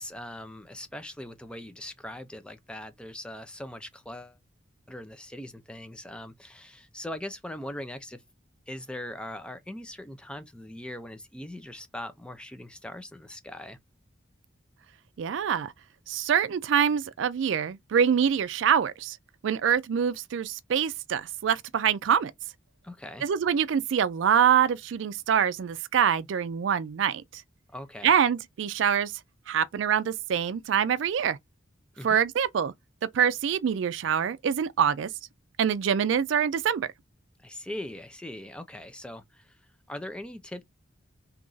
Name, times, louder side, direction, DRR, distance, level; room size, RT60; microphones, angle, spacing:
voice 1, 0.0-4.4 4.9-8.2 8.7-13.8 22.8-23.2 27.7-28.1 32.0-32.2 37.4-39.6 39.9-40.6, left 1 dB, 5° left, 0.4 m, -40 dB
voice 2, 15.2-15.7 16.1-19.2 19.4-22.3 23.2-27.4 28.0-29.1 29.5-31.4 32.0-32.7 33.1-35.1 35.6-36.9, right 8 dB, 70° right, 0.3 m, -25 dB
2.9 x 2.5 x 3.8 m
head